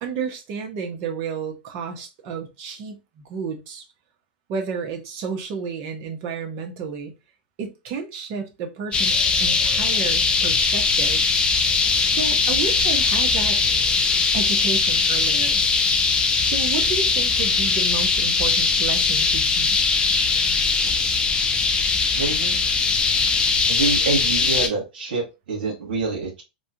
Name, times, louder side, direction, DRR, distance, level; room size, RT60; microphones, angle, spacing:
voice 1, 0.0-3.9 4.5-7.1 7.6-11.2 12.1-13.6 14.3-15.6 16.4-20.1, right 5 dB, 45° right, 1.0 m, -31 dB
sound 1, 8.9-24.7, left 4 dB, 20° left, 0.5 m, -20 dB
voice 2, 22.1-22.6 23.7-26.4, right 4 dB, 80° right, 1.4 m, -26 dB
3.0 x 2.4 x 2.8 m
hypercardioid pair, 125°, 5 cm